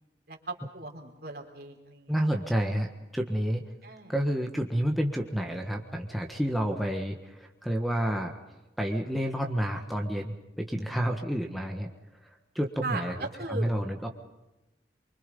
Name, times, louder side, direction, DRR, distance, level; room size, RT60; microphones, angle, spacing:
voice 1, 0.3-2.4 3.8-4.1 12.8-13.7, right 3 dB, 60° right, 2 dB, 3.7 m, -38 dB
voice 2, 2.1-2.9 3.1-3.6 4.1-8.3 8.8-11.9 12.5-13.2 13.5-14.1, equal, ahead, 4 dB, 1.5 m, -29 dB
24.5 x 24.5 x 5.4 m, 1.0 s
head